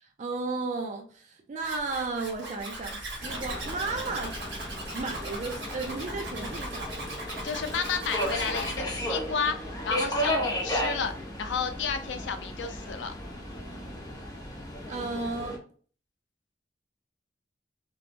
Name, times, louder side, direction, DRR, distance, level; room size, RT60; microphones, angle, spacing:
voice 1, 0.0-4.3 4.9-7.0 14.9-15.6, right 3 dB, 40° right, 0.4 m, -34 dB
Zipper (clothing), 1.6-8.8, right 1 dB, 80° right, 1.2 m, -38 dB
Subway metro underground, 3.2-15.6, equal, 20° left, 0.7 m, -34 dB
voice 2, 7.4-9.6 9.8-11.1 11.4-13.1, left 6 dB, 85° left, 0.4 m, -31 dB
3.1 x 2.0 x 2.5 m
head